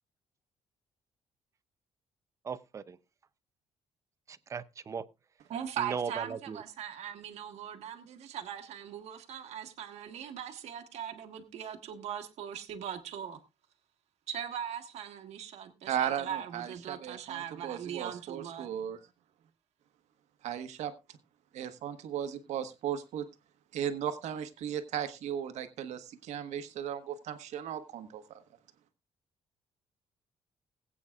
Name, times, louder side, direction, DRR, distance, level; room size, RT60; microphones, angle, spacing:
voice 1, 2.4-3.0 4.3-5.0 5.8-6.6, right 6 dB, 25° right, 0.6 m, -37 dB
voice 2, 5.5-13.4 14.3-18.7, right 9 dB, 70° right, 1.4 m, -40 dB
voice 3, 15.9-19.0 20.4-20.9 21.5-23.3 23.7-28.4, right 9 dB, 90° right, 1.3 m, -36 dB
21.0 x 8.5 x 2.4 m
cardioid pair, 175°, 11 cm